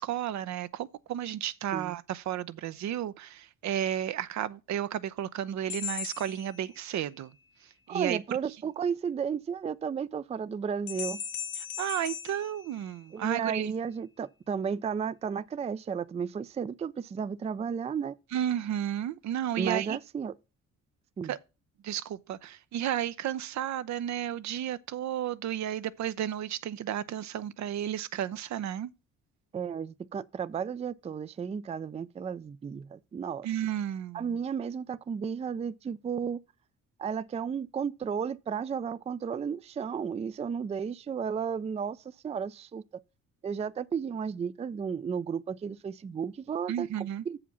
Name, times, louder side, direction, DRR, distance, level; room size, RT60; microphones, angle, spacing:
voice 1, 0.0-7.3 7.9-8.2 11.8-13.7 18.3-20.0 21.3-21.4 21.8-28.9 33.4-34.3 46.7-47.2, right 11 dB, 65° right, 0.6 m, -33 dB
sound 1, 5.7-7.2 10.9-13.4, left 8 dB, 70° left, 1.8 m, -39 dB
voice 2, 7.9-11.2 13.1-18.2 19.6-20.3 21.2-21.3 29.5-33.5 34.1-36.4 37.0-42.8 43.4-47.4, right 6 dB, 20° right, 0.4 m, -33 dB
7.1 x 5.0 x 6.9 m
cardioid pair, 90°, 30 cm